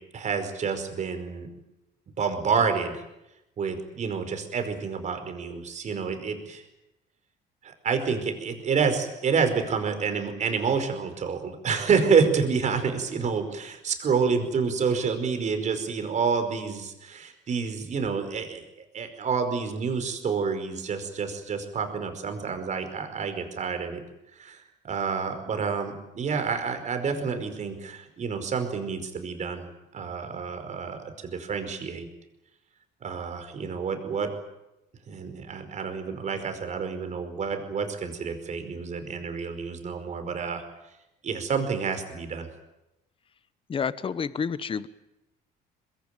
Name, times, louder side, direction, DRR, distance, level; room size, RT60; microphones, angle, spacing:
voice 1, 0.1-1.5 2.2-3.0 3.6-6.6 7.6-18.6 18.9-24.0 24.4-29.7 29.9-32.1 33.0-34.3 35.1-40.6 41.2-42.5, right 5 dB, 45° right, 7 dB, 5.1 m, -28 dB
voice 2, 43.7-44.9, left 6 dB, 30° left, 15 dB, 1.1 m, -29 dB
23.5 x 21.5 x 9.3 m, 0.92 s
cardioid pair, 110°, 17 cm